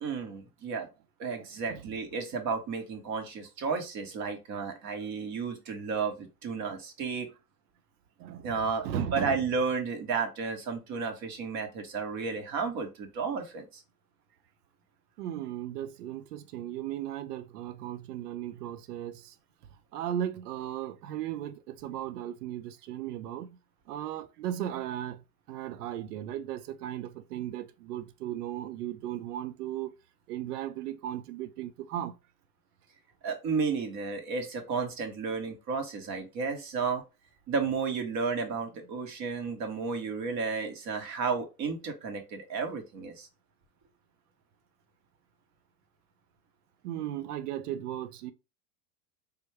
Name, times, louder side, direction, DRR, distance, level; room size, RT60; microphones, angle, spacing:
voice 1, 0.0-0.9 1.2-7.3 8.4-13.8 33.2-37.0 37.5-43.3, right 5 dB, 35° right, 0.8 m, -32 dB
voice 2, 1.3-1.8 8.2-9.5 15.2-19.3 19.9-23.5 23.9-25.2 25.5-29.9 30.3-32.1 46.8-48.3, right 11 dB, 80° right, 0.6 m, -36 dB
3.4 x 2.2 x 3.2 m
hypercardioid pair, 100°, 46 cm